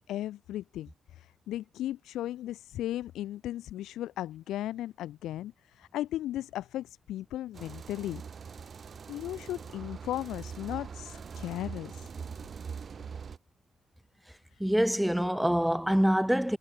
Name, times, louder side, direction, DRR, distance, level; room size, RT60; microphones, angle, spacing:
voice 1, 0.1-8.2 9.1-12.1, left 13 dB, 85° left, 0.7 m, -36 dB
sound 1, 7.5-13.4, right 6 dB, 45° right, 5.6 m, -42 dB
voice 2, 14.6-16.6, equal, 5° right, 1.6 m, -25 dB
cardioid pair, 90°, 0 cm